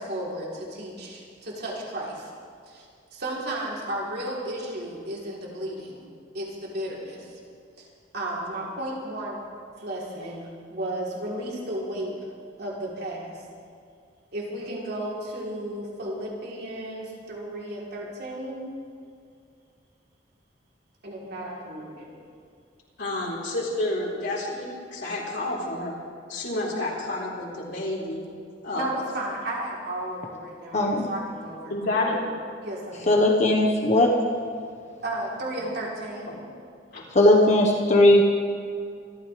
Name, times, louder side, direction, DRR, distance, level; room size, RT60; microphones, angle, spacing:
voice 1, 0.0-2.3 2.7-2.9 3.1-6.0 6.3-7.4 7.8-7.9 8.1-9.4 9.8-12.1 12.6-13.4 14.3-18.6 21.0-22.1 28.7-32.0 32.6-33.2 35.0-36.3, right 1 dB, 65° right, -4 dB, 3.6 m, -34 dB
voice 2, 23.0-25.9 26.3-28.2 28.6-28.9 31.7-32.2 36.3-36.4 36.9-37.1, left 2 dB, 70° left, -5 dB, 4.3 m, -29 dB
voice 3, 33.1-34.1 37.1-38.2, left 1 dB, 40° left, 0 dB, 1.3 m, -18 dB
26.0 x 13.5 x 3.4 m, 2.3 s
head